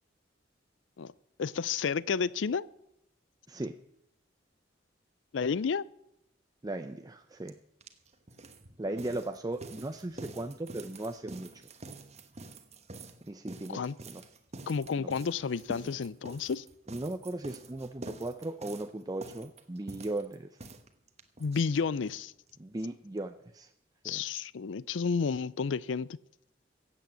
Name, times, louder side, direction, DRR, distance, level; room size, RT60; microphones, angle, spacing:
voice 1, 1.4-2.7 5.3-5.9 13.7-14.0 14.7-16.6 21.4-22.3 24.0-26.1, left 5 dB, 80° left, 21 dB, 0.5 m, -31 dB
voice 2, 6.6-7.6 8.8-11.5 13.3-14.2 15.0-15.1 16.9-20.5 22.6-23.7 24.0-24.2, right 2 dB, 20° right, 7 dB, 0.6 m, -37 dB
sound 1, 7.5-7.6 7.8-22.2 22.5-22.6 22.8-22.9 23.2-23.3, right 2 dB, 35° right, 1.2 m, -47 dB
15.5 x 8.3 x 7.5 m, 0.81 s
head